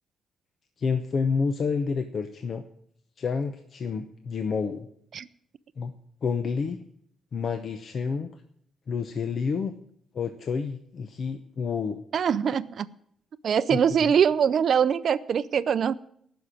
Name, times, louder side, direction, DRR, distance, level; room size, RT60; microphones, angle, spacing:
voice 1, 0.8-2.6 3.2-4.9 5.8-5.9 6.2-6.8 7.3-8.3 8.9-9.7 10.1-12.0 13.7-14.1, left 5 dB, 45° left, 8 dB, 0.8 m, -29 dB
voice 2, 12.1-12.9 13.4-15.9, right 7 dB, 50° right, 14 dB, 0.5 m, -23 dB
15.0 x 6.1 x 9.8 m, 0.68 s
cardioid pair, 160°, 0 cm